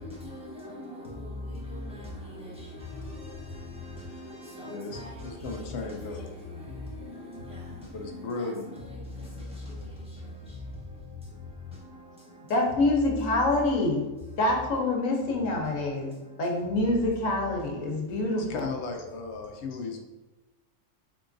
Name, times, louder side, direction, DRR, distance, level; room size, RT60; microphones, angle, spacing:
voice 1, 0.0-12.8 13.6-13.7 14.1-14.4 15.0-16.8 17.9-18.1, left 2 dB, 5° right, -8 dB, 1.1 m, -41 dB
voice 2, 4.6-6.3 7.9-8.7 18.4-20.0, left 3 dB, 65° left, 3 dB, 0.8 m, -36 dB
voice 3, 12.5-14.1 14.4-16.1 16.4-18.7, left 2 dB, 85° left, 0 dB, 1.2 m, -26 dB
3.8 x 3.6 x 2.5 m, 1.1 s
omnidirectional pair, 1.3 m